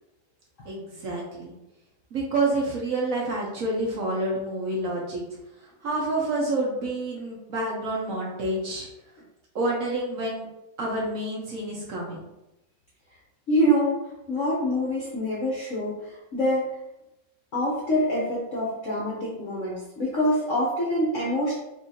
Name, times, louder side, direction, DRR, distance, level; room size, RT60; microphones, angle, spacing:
voice 1, 0.6-1.5 2.1-5.3 5.8-8.9 9.5-10.5 10.8-12.2, right 2 dB, 55° right, -3 dB, 1.1 m, -28 dB
voice 2, 13.5-14.0 14.3-16.8 17.5-21.6, equal, 55° left, -5 dB, 0.9 m, -25 dB
5.3 x 2.7 x 2.7 m, 0.94 s
omnidirectional pair, 2.0 m